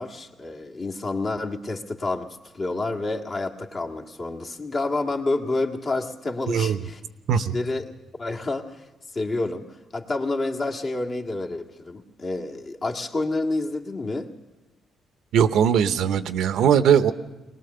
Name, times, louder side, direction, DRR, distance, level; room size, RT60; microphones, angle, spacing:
voice 1, 0.0-7.0 7.4-7.8 8.2-8.8 9.1-9.7 9.9-14.3, left 2 dB, 40° left, 0 dB, 1.8 m, -29 dB
voice 2, 6.5-6.8 7.3-7.5 15.3-17.1, right 8 dB, 80° right, 11 dB, 0.8 m, -20 dB
21.5 x 19.5 x 6.8 m, 1.1 s
cardioid pair, 90°, 0 cm